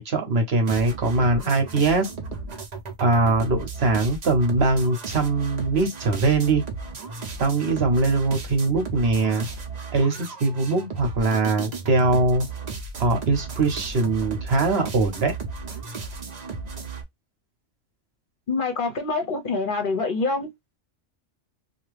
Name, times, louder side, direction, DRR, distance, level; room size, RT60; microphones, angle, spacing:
voice 1, 0.0-2.1 3.0-6.6 7.4-9.5 9.9-12.5 13.0-15.3, right 3 dB, 60° right, 1.1 m, -22 dB
sound 1, 0.7-17.0, right 4 dB, 45° right, 0.7 m, -35 dB
voice 2, 18.5-20.5, left 3 dB, 50° left, 0.9 m, -25 dB
2.8 x 2.4 x 3.1 m
omnidirectional pair, 1.2 m